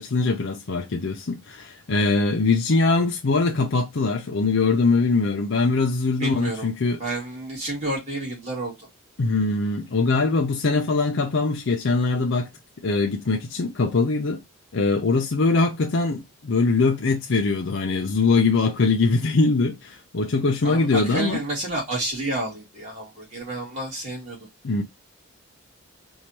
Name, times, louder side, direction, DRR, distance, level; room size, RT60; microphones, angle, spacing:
voice 1, 0.0-7.0 9.2-12.5 12.8-14.4 14.7-21.4 24.6-24.8, left 3 dB, 60° left, 0.6 m, -22 dB
voice 2, 6.2-6.7 7.0-8.9 20.6-24.4, right 2 dB, 30° right, 2.5 m, -30 dB
4.6 x 2.7 x 2.9 m
head